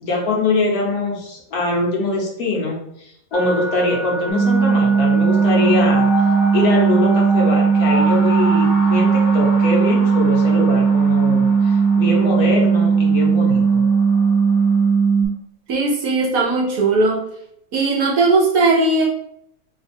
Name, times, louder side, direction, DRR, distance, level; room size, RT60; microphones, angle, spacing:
voice 1, 0.0-6.1 6.5-13.9, left 2 dB, 65° left, -1 dB, 1.3 m, -23 dB
sound 1, 3.3-15.0, left 1 dB, 45° left, 0.9 m, -29 dB
sound 2, 4.3-15.3, right 5 dB, 10° right, 0.8 m, -16 dB
voice 2, 15.7-17.2 17.7-19.0, right 3 dB, 70° right, -1 dB, 0.9 m, -17 dB
3.1 x 2.3 x 4.2 m, 0.73 s
omnidirectional pair, 1.8 m